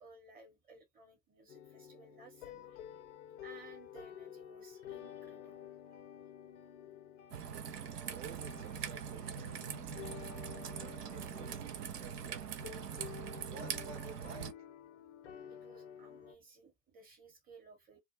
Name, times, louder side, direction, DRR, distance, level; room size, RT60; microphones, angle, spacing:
voice 1, 0.0-2.8 3.4-6.1 6.6-6.7 15.5-18.0, right 4 dB, 20° right, 0.9 m, -59 dB
sound 1, 1.5-16.4, left 10 dB, 50° left, 0.6 m, -51 dB
Raindrop / Trickle dribble, 7.3-14.5, right 8 dB, 75° right, 0.6 m, -42 dB
voice 2, 8.1-10.0 10.6-12.8 13.5-14.5, right 6 dB, 45° right, 0.9 m, -53 dB
2.3 x 2.1 x 2.7 m
figure-of-eight pair, 90°, 47 cm